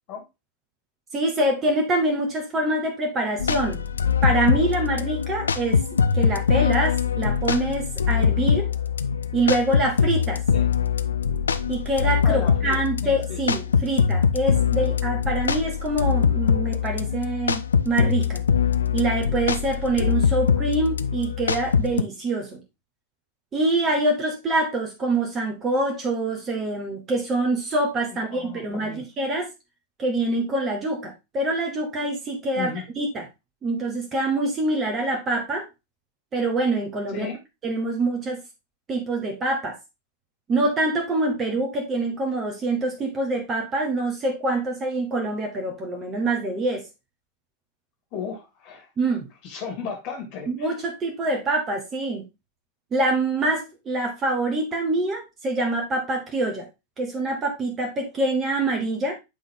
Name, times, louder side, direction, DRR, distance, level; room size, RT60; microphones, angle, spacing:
voice 1, 1.1-3.8 4.2-5.8 6.1-8.7 9.3-10.4 11.7-18.4 18.9-22.6 23.5-29.5 30.0-33.2 33.6-35.6 36.3-37.3 37.6-38.4 38.9-39.7 40.5-46.8 49.0-49.3 50.5-52.2 52.9-56.7 57.0-59.1, right 2 dB, 25° right, 1 dB, 1.5 m, -25 dB
sound 1, 3.4-22.0, left 7 dB, 70° left, 0.4 m, -23 dB
voice 2, 12.2-13.4 28.1-29.0 32.5-32.8 37.1-37.4 48.1-48.9 49.4-50.7, left 6 dB, 40° left, 2 dB, 2.3 m, -34 dB
8.5 x 3.8 x 3.7 m, 0.25 s
figure-of-eight pair, 90°, 0 cm